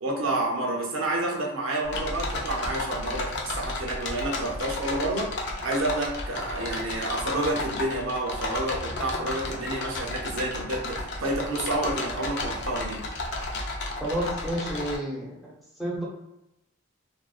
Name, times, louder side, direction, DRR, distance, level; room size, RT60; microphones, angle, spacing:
voice 1, 0.0-5.3 5.6-13.0, right 2 dB, 80° right, 0 dB, 0.6 m, -29 dB
sound 1, 1.8-15.0, left 2 dB, 60° left, 0.5 m, -33 dB
voice 2, 14.0-15.5 15.8-16.0, right 1 dB, ahead, -6 dB, 0.7 m, -30 dB
2.5 x 2.1 x 2.3 m, 0.89 s
head